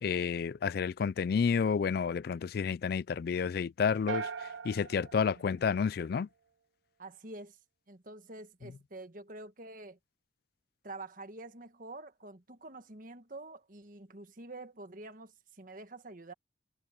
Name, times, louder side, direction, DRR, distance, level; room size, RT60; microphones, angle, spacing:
voice 1, 0.0-4.3 4.6-6.3, left 6 dB, 50° left, 0.3 m, -30 dB
sound 1, 4.1-6.3, right 6 dB, 75° right, 0.5 m, -41 dB
voice 2, 7.0-7.6 7.9-10.0 10.8-16.3, right 2 dB, 45° right, 1.5 m, -47 dB
head